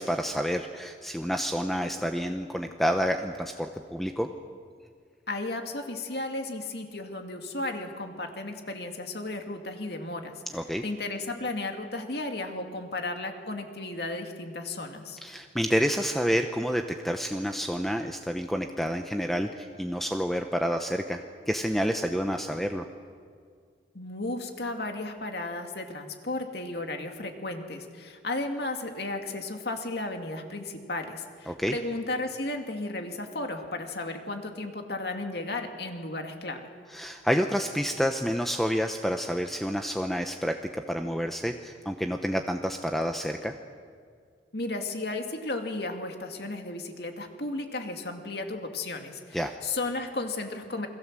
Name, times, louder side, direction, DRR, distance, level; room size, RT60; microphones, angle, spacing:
voice 1, 0.0-4.3 10.5-10.8 15.2-22.8 31.5-31.7 36.9-40.5 40.9-43.5 49.3-49.5, equal, ahead, 5 dB, 0.9 m, -29 dB
voice 2, 5.3-10.3 10.8-15.2 23.9-36.6 44.5-50.9, left 2 dB, 60° left, 4 dB, 2.5 m, -34 dB
28.5 x 22.0 x 7.6 m, 2.1 s
head